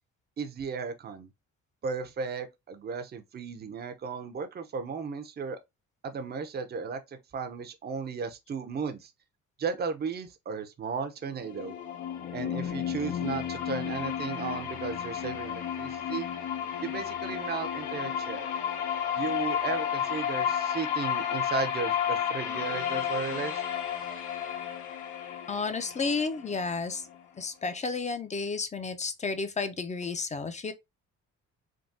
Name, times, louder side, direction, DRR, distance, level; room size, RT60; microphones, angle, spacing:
voice 1, 0.4-1.3 1.8-5.6 6.0-9.1 9.6-11.8 12.3-16.3 16.8-18.5 19.1-23.6, right 5 dB, 35° right, 0.6 m, -35 dB
sound 1, 11.3-27.2, left 9 dB, 80° left, 0.8 m, -32 dB
voice 2, 25.5-27.0 27.4-30.7, left 4 dB, 25° left, 0.5 m, -32 dB
3.5 x 2.3 x 2.5 m
cardioid pair, 90°, 30 cm